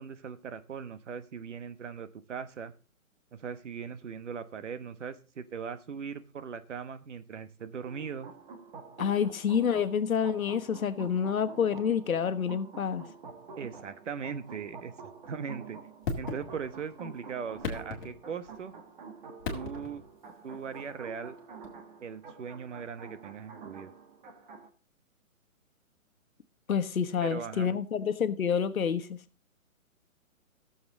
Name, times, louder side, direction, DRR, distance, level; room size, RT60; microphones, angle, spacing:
voice 1, 0.0-2.7 3.3-8.3 13.6-15.8 16.2-18.7 19.5-20.0 20.4-21.4 22.0-23.9 27.2-27.8, right 6 dB, 55° right, 1.2 m, -39 dB
sound 1, 7.8-24.7, right 5 dB, 35° right, 1.5 m, -48 dB
voice 2, 9.0-13.1 26.7-29.2, left 7 dB, 75° left, 1.3 m, -28 dB
sound 2, 16.0-16.9 17.5-18.7 19.4-20.1 21.6-21.7, left 4 dB, 35° left, 2.1 m, -37 dB
14.5 x 7.2 x 3.8 m
hypercardioid pair, 160°, 42 cm